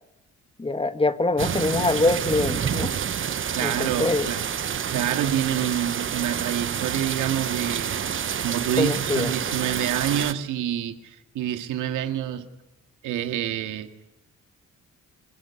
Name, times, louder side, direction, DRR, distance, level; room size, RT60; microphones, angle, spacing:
voice 1, 0.6-3.0 3.6-4.3 8.8-9.3, left 2 dB, 20° left, 1.9 m, -24 dB
sound 1, 1.4-10.3, right 8 dB, 40° right, 0.9 m, -28 dB
voice 2, 3.5-4.5 4.9-12.5 13.0-13.9, right 11 dB, 85° right, 2.2 m, -27 dB
27.5 x 21.5 x 9.9 m
cardioid pair, 90°, 30 cm